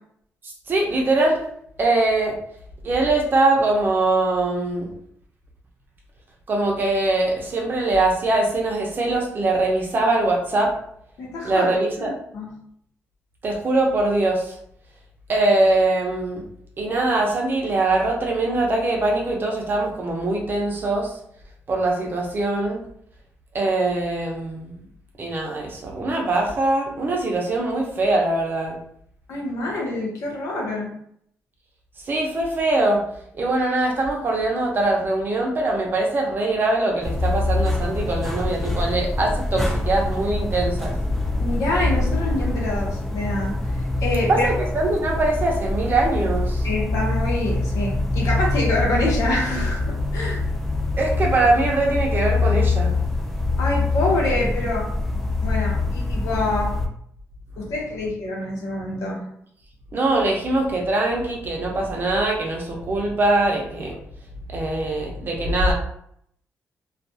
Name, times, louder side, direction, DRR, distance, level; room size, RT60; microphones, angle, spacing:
voice 1, 0.7-1.4 1.8-2.4 2.8-4.9 6.5-10.7 11.4-12.1 13.4-14.4 15.3-16.4 16.8-21.1 21.7-22.8 23.5-24.7 25.2-28.8 32.1-33.0 33.3-40.9 44.3-46.7 51.0-52.9 59.9-63.9 64.5-65.7, right 2 dB, 40° right, 0 dB, 0.6 m, -22 dB
voice 2, 11.2-12.5 29.3-30.9 41.4-43.6 44.0-44.5 46.6-50.4 53.6-54.9 55.4-56.8 57.6-59.3, left 2 dB, 85° left, -3 dB, 0.9 m, -26 dB
sound 1, 37.0-56.9, left 2 dB, 5° left, 0.3 m, -24 dB
2.4 x 2.3 x 2.6 m, 0.69 s
cardioid pair, 135°, 5 cm